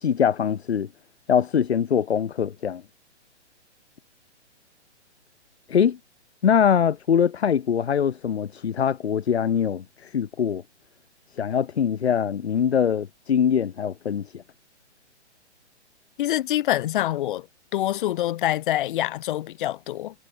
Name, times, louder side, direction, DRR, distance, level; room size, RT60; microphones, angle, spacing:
voice 1, 0.0-0.9 1.3-2.8 5.7-6.0 6.4-10.6 11.4-14.4, left 8 dB, 65° left, 2.5 m, -23 dB
voice 2, 16.2-17.5 17.7-20.1, left 13 dB, 45° left, 7.8 m, -25 dB
figure-of-eight pair, 130°, 35 cm